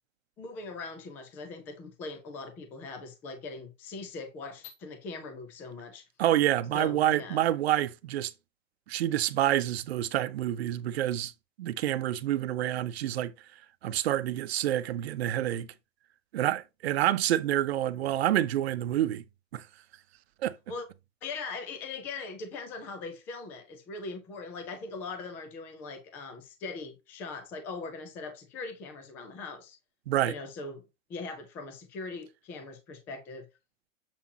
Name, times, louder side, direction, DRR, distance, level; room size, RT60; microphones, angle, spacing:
voice 1, 0.4-6.0 6.7-7.4 20.7-20.9 21.2-29.8 30.3-30.8 31.1-33.5, left 3 dB, 5° left, 0.3 m, -40 dB
voice 2, 6.2-8.3 8.9-11.3 11.6-13.3 13.8-15.7 16.3-19.2 19.5-19.6 20.4-20.6 30.1-30.3, right 12 dB, 50° right, 0.8 m, -27 dB
7.3 x 5.7 x 2.8 m
hypercardioid pair, 135°, 40 cm